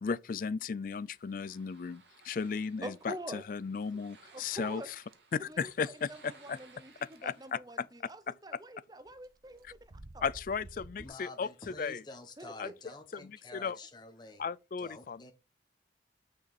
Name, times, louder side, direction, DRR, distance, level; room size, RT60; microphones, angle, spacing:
voice 1, 0.0-4.8 5.3-6.1 6.5-6.6 7.2-7.6 9.6-9.7 10.2-12.0 12.6-12.7 13.1-13.8 14.4-15.2, left 5 dB, 45° left, 0.3 m, -35 dB
sound 1, 0.9-7.5, right 4 dB, 70° right, 2.1 m, -60 dB
voice 2, 2.8-3.4 4.3-4.9 5.4-10.2 12.4-13.0, right 1 dB, 20° right, 0.6 m, -46 dB
sound 2, 5.1-5.8 6.5-6.6 6.9-7.2 7.8-8.1 9.0-11.1, right 1 dB, 55° right, 0.9 m, -52 dB
voice 3, 11.0-14.5 14.8-15.3, left 2 dB, 25° left, 1.2 m, -49 dB
6.5 x 5.5 x 4.2 m
head